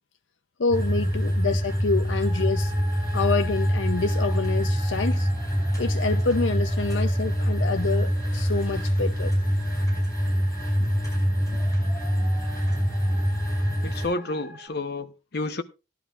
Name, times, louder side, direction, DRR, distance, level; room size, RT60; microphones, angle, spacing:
voice 1, 0.6-2.7 3.1-5.3 5.8-9.4 10.8-10.9, left 4 dB, 90° left, 0.7 m, -27 dB
sound 1, 0.7-14.1, equal, 20° left, 5.6 m, -25 dB
sound 2, 2.2-14.7, equal, 5° right, 5.3 m, -46 dB
voice 2, 13.8-15.6, left 2 dB, 60° left, 1.0 m, -30 dB
17.0 x 11.0 x 2.4 m
head